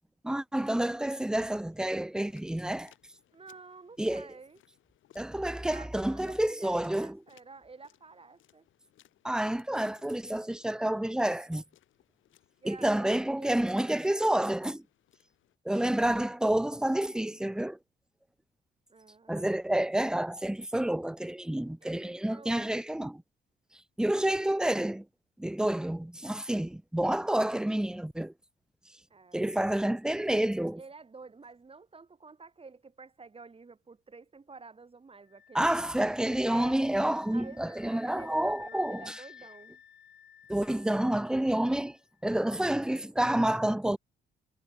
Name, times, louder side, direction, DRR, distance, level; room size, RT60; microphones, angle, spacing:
voice 1, 0.2-2.9 4.0-4.3 5.1-7.2 9.2-11.6 12.6-14.8 15.6-17.8 19.3-23.2 23.7-25.1 25.4-28.3 29.3-30.8 35.5-39.2 40.5-44.0, right 1 dB, 5° right, 0.6 m, -29 dB
sound 1, 1.7-15.6, left 13 dB, 80° left, 4.7 m, -65 dB
voice 2, 3.3-4.6 5.4-8.7 12.6-13.1 13.3-14.7 18.9-19.5 21.8-22.7 29.1-29.5 30.8-35.8 36.5-36.8 37.3-39.8, right 4 dB, 30° right, 3.6 m, -51 dB
sound 2, 35.3-42.1, left 9 dB, 60° left, 3.3 m, -54 dB
cardioid pair, 90°, 20 cm